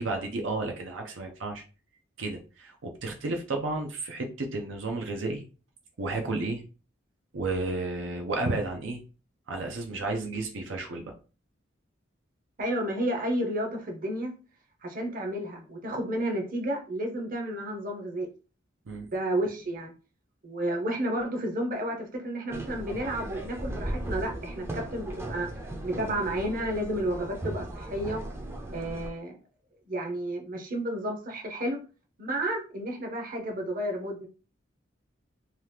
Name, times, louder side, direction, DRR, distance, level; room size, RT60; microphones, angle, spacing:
voice 1, 0.0-1.6 2.2-5.4 6.0-6.6 7.3-9.0 9.5-11.1 18.9-19.1, right 2 dB, 80° right, 2 dB, 0.6 m, -32 dB
voice 2, 12.6-14.3 14.8-18.3 19.1-19.9 20.4-25.5 25.8-28.2 28.7-29.4 29.9-31.8 32.2-34.3, right 1 dB, 45° right, 1 dB, 0.8 m, -31 dB
sound 1, 22.5-29.1, right 1 dB, 15° right, 0.5 m, -37 dB
2.9 x 2.4 x 3.3 m, 0.34 s
head